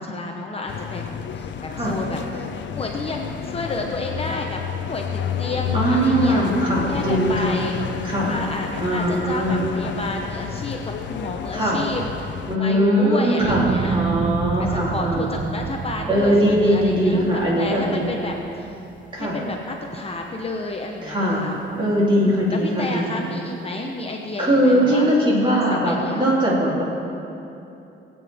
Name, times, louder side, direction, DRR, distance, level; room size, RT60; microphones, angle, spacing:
voice 1, 0.0-2.5 2.8-4.6 4.9-6.4 6.9-7.8 8.3-12.3 12.6-18.8 19.2-21.6 22.1-25.1 25.5-26.2, left 2 dB, 30° left, 1 dB, 0.9 m, -31 dB
sound 1, 0.7-12.6, left 8 dB, 65° left, 0.6 m, -30 dB
voice 2, 5.7-7.6 8.0-8.3 8.8-9.7 11.5-11.8 12.5-13.7 13.9-15.4 16.1-18.2 19.1-19.4 21.0-21.4 21.7-23.2 24.4-26.8, equal, 25° right, -6 dB, 3.2 m, -20 dB
sound 2, 13.4-19.7 20.2-20.7, right 6 dB, 40° right, 0.5 m, -29 dB
20.5 x 8.7 x 3.6 m, 2.8 s
cardioid pair, 135°, 21 cm